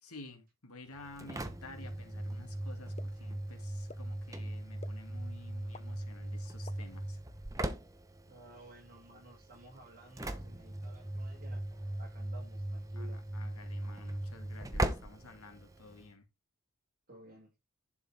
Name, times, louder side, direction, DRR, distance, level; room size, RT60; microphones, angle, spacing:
voice 1, 0.0-7.2 13.0-16.3, left 2 dB, 80° left, 2.6 m, -52 dB
Engine / Slam, 0.9-16.1, right 1 dB, 15° right, 0.9 m, -39 dB
sound 1, 3.0-3.1 3.9-4.0 4.8-4.9 5.7-5.8 6.7-6.8 7.6-7.7, left 3 dB, 30° left, 0.4 m, -45 dB
voice 2, 8.2-13.2 17.1-17.5, right 1 dB, 40° right, 5.9 m, -55 dB
11.0 x 5.8 x 3.6 m
head